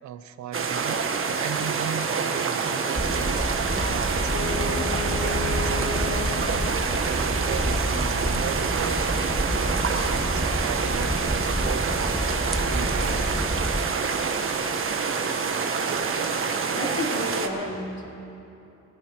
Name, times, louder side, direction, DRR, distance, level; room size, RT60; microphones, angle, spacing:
voice 1, 0.0-3.5 3.9-13.3, right 9 dB, 70° right, 11 dB, 0.8 m, -36 dB
sound 1, 0.5-17.5, right 5 dB, 45° right, 1.3 m, -27 dB
sound 2, 2.9-13.9, equal, ahead, 0.5 m, -29 dB
Wind instrument woodwind instrument, 4.2-7.1, left 9 dB, 75° left, 0.8 m, -34 dB
voice 2, 16.7-18.1, left 1 dB, 60° left, -4 dB, 3.8 m, -31 dB
21.5 x 16.0 x 3.1 m, 2.9 s
cardioid pair, 90°, 30 cm